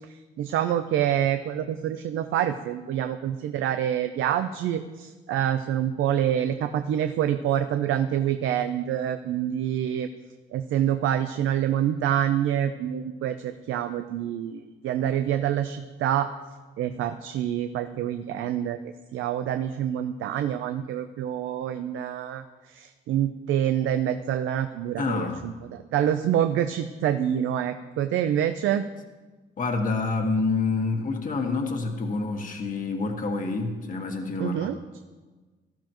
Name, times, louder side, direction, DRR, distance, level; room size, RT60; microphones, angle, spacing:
voice 1, 0.1-10.1 10.5-16.3 16.8-18.8 19.1-28.8 34.4-34.8, right 10 dB, 85° right, 8 dB, 0.6 m, -26 dB
voice 2, 25.0-25.5 29.6-34.7, left 3 dB, 40° left, 2 dB, 1.6 m, -27 dB
18.0 x 13.0 x 3.0 m, 1.3 s
cardioid pair, 90°, 20 cm